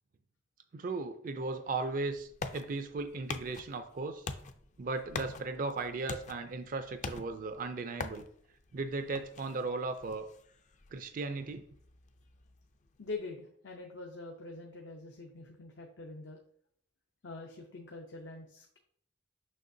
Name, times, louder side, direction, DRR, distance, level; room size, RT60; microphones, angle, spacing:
voice 1, 0.7-4.3 4.8-8.2 8.7-10.3 10.9-11.6, right 3 dB, 45° right, 8 dB, 0.4 m, -36 dB
sound 1, 1.7-13.1, left 4 dB, 40° left, 0.4 m, -46 dB
voice 2, 13.0-16.4 17.2-18.8, left 3 dB, 80° left, 1 dB, 0.7 m, -44 dB
6.5 x 5.5 x 2.6 m, 0.67 s
head